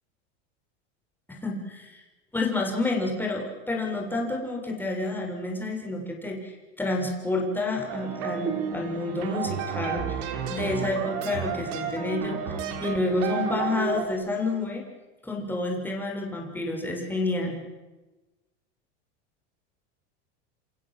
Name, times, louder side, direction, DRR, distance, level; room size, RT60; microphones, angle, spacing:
voice 1, 1.3-2.0 2.3-14.8 15.2-17.6, left 2 dB, 5° left, 0 dB, 6.8 m, -29 dB
sound 1, 7.9-14.1, right 7 dB, 60° right, 5.3 m, -32 dB
28.5 x 26.5 x 7.8 m, 1.1 s
supercardioid pair, 130°, 35 cm